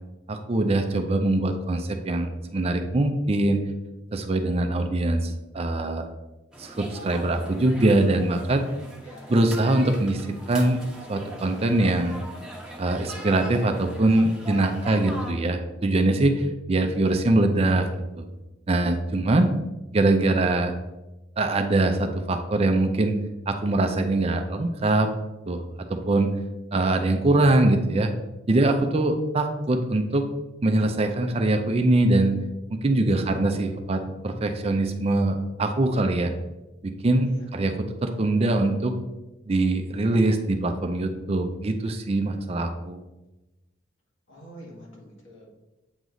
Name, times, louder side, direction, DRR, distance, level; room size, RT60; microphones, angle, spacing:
voice 1, 0.3-3.6 4.1-6.0 6.6-8.6 9.3-10.8 11.1-12.2 12.8-17.9 18.1-18.2 18.7-19.5 19.9-20.7 21.4-23.2 23.5-25.1 25.5-25.6 25.9-26.3 26.7-28.1 28.5-30.2 30.6-32.3 32.8-36.3 36.8-38.9 39.5-43.0, right 2 dB, 30° right, 6 dB, 0.4 m, -23 dB
sound 1, 6.5-15.3, equal, 5° right, 0.8 m, -41 dB
voice 2, 9.0-9.5 33.1-33.5 33.8-34.2 37.2-37.5 44.3-45.5, equal, 70° left, -3 dB, 1.9 m, -46 dB
7.9 x 3.1 x 3.9 m, 1.0 s
head